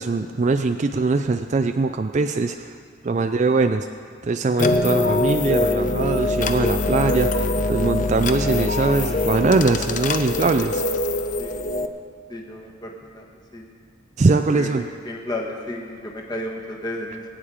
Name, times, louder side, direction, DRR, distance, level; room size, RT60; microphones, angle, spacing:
voice 1, 0.0-2.7 3.0-3.9 4.2-10.8 14.2-14.9, right 3 dB, 35° right, 7 dB, 0.4 m, -22 dB
sound 1, 4.6-11.9, left 2 dB, 40° left, 0.6 m, -23 dB
voice 2, 12.3-13.2 13.5-13.7 14.5-17.2, left 1 dB, 20° left, 1 dB, 1.4 m, -33 dB
21.5 x 8.9 x 5.0 m, 2.1 s
head